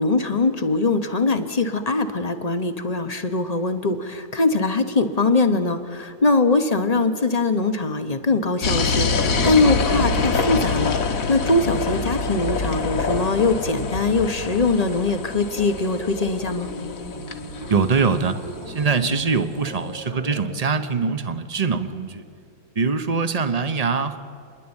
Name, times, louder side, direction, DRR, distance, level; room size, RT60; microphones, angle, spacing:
voice 1, 0.0-11.0 11.3-16.7, left 3 dB, 30° left, 8 dB, 0.8 m, -22 dB
sound 1, 8.6-19.3, left 4 dB, 55° left, 1.5 m, -26 dB
sound 2, 15.2-20.4, equal, 75° right, 4.7 m, -38 dB
voice 2, 17.7-18.4 18.7-22.2 22.7-24.2, right 5 dB, 30° right, 9 dB, 0.7 m, -23 dB
28.0 x 11.0 x 8.9 m, 2.4 s
omnidirectional pair, 1.8 m